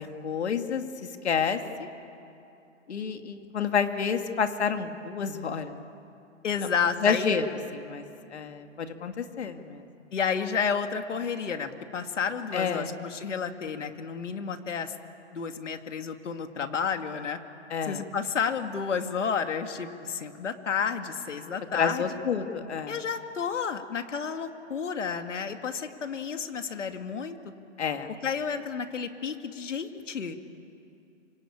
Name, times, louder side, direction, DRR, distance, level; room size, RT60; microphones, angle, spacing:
voice 1, 0.0-1.9 2.9-5.7 6.6-6.7 7.0-7.5 7.7-9.9 12.5-12.9 17.7-18.0 21.7-23.0 27.8-28.1, left 6 dB, 65° left, 6 dB, 2.4 m, -29 dB
voice 2, 6.4-7.4 10.1-15.0 15.3-17.4 17.8-22.1 22.9-27.4 28.2-30.4, left 6 dB, 85° left, 7 dB, 2.4 m, -31 dB
26.0 x 24.5 x 8.7 m, 2.7 s
hypercardioid pair, 175°, 36 cm